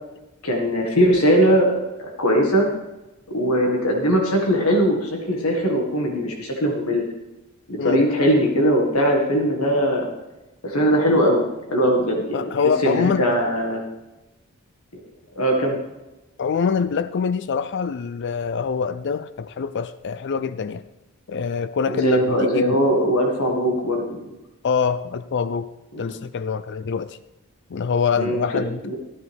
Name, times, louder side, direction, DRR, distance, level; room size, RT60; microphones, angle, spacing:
voice 1, 0.4-1.7 2.0-2.7 3.3-7.1 7.7-10.1 10.6-11.4 11.7-13.8 15.4-15.8 21.9-24.2 25.9-26.1 28.2-29.0, equal, 80° left, 1 dB, 2.0 m, -20 dB
voice 2, 12.3-13.5 16.4-20.8 21.3-22.8 24.6-25.7 26.0-27.2 27.7-28.9, left 6 dB, 55° left, 13 dB, 0.4 m, -25 dB
14.0 x 9.6 x 3.6 m, 1.0 s
head